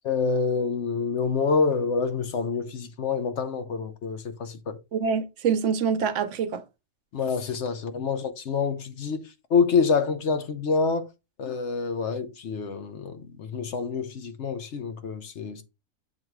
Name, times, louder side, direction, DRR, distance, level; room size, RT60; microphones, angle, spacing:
voice 1, 0.1-4.8 7.1-9.2 9.5-11.1 11.4-15.6, left 5 dB, 65° left, 1.1 m, -27 dB
voice 2, 4.9-6.6, right 6 dB, 75° right, 1.0 m, -25 dB
7.3 x 2.9 x 4.6 m
omnidirectional pair, 1.3 m